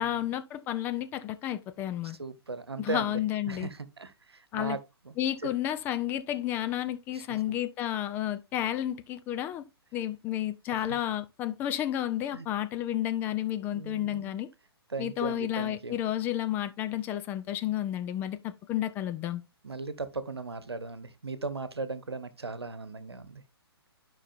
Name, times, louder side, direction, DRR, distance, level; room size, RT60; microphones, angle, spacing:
voice 1, 0.0-2.2 2.8-3.7 4.5-4.8 5.2-9.6 9.9-14.5 15.0-19.4, left 12 dB, 15° left, 0.3 m, -31 dB
voice 2, 2.2-3.2 3.5-4.8 5.0-5.1 5.4-5.5 7.1-7.2 10.7-11.0 12.3-12.5 13.7-14.3 14.9-16.0 19.6-23.4, right 3 dB, 75° right, 1.1 m, -37 dB
12.5 x 5.4 x 2.5 m
figure-of-eight pair, 125°, 14 cm